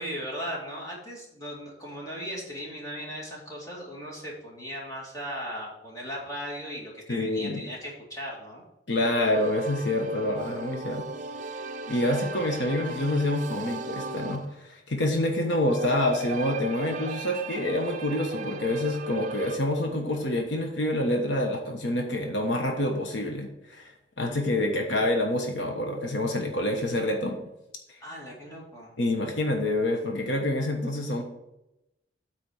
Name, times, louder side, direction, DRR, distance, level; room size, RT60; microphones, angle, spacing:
voice 1, 0.0-8.6 28.0-28.9, equal, 20° left, -4 dB, 2.3 m, -37 dB
voice 2, 7.1-7.6 8.9-11.1 11.9-23.9 24.2-27.4 29.0-31.2, left 1 dB, 80° left, 2 dB, 1.3 m, -27 dB
sound 1, 9.0-14.6 15.4-19.6, right 4 dB, 40° right, 0.6 m, -38 dB
8.7 x 4.3 x 6.4 m, 0.87 s
head